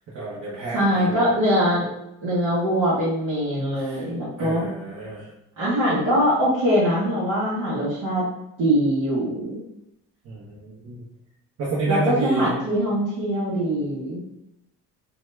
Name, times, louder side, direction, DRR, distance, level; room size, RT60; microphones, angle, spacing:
voice 1, 0.1-1.2 3.7-4.0 4.4-5.3 10.2-11.0 11.6-12.5, right 3 dB, 55° right, -7 dB, 1.0 m, -30 dB
voice 2, 0.7-1.9 2.2-4.7 5.6-8.2 8.6-9.6 11.9-14.2, equal, 80° right, -10 dB, 1.2 m, -22 dB
2.8 x 2.3 x 3.1 m, 0.84 s
cardioid pair, 105°, 31 cm